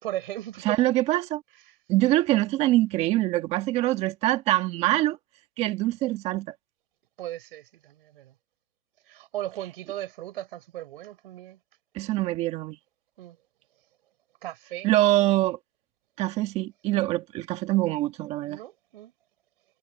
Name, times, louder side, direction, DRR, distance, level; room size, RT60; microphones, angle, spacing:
voice 1, 0.0-0.8 7.2-8.3 9.1-11.6 13.2-13.4 14.4-14.9 18.4-19.1, right 14 dB, 35° right, 4.0 m, -37 dB
voice 2, 0.6-1.4 1.9-5.2 5.6-6.5 11.9-12.8 14.8-15.6 16.2-18.6, right 16 dB, 15° right, 1.5 m, -24 dB
hypercardioid pair, 155°, 45 cm